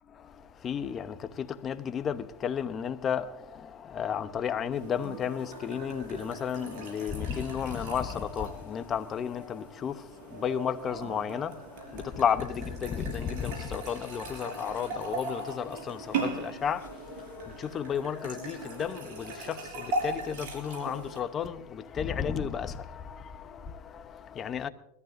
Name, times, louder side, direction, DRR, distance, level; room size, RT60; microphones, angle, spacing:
voice 1, 0.1-24.7, left 8 dB, 35° left, 0.9 m, -33 dB
sound 1, 4.7-21.2, right 3 dB, 65° right, 6.2 m, -39 dB
22.0 x 14.5 x 2.7 m
hypercardioid pair, 105°, 0 cm